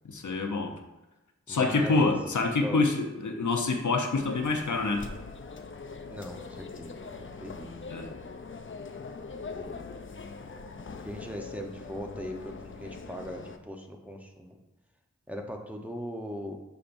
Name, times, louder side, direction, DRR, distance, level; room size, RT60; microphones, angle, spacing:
voice 1, 0.0-0.7 1.5-5.1 7.9-8.1, left 3 dB, 85° left, 3 dB, 0.7 m, -26 dB
voice 2, 1.5-2.1 2.6-2.8 6.1-7.8 9.5-9.9 10.4-14.6 15.3-16.6, equal, 5° right, 1 dB, 0.8 m, -39 dB
sound 1, 4.1-13.6, left 4 dB, 45° left, 0.5 m, -42 dB
6.9 x 5.6 x 2.6 m, 1.1 s
wide cardioid pair, 50°, 29 cm